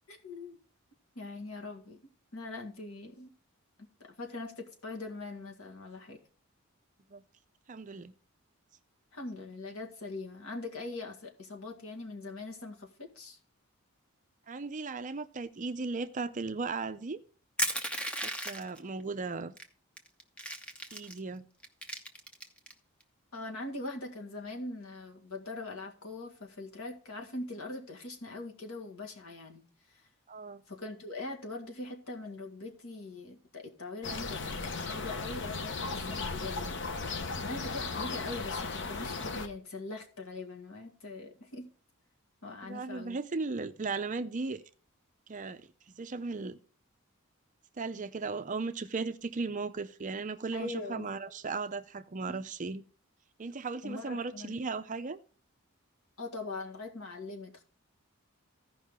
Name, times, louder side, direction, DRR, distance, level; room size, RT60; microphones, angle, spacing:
voice 1, 0.1-0.6 1.2-2.0 2.3-3.3 3.8-6.2 9.1-13.4 23.3-29.6 30.7-34.4 34.7-36.8 37.4-41.7 42.4-43.2 50.5-51.1 52.3-52.4 53.8-54.6 56.2-57.6, left 2 dB, 75° left, 2.0 m, -42 dB
voice 2, 7.7-8.1 14.5-17.2 18.2-19.5 20.9-21.5 30.3-30.6 42.6-44.6 45.3-46.6 47.8-52.8 53.4-55.2, right 4 dB, 35° right, 0.5 m, -36 dB
Crushing, 17.6-18.8 19.6-19.7 20.0-21.2 21.6-22.7, equal, 5° left, 0.8 m, -34 dB
sound 1, 34.0-39.5, left 4 dB, 55° left, 0.8 m, -36 dB
15.5 x 5.4 x 3.6 m
head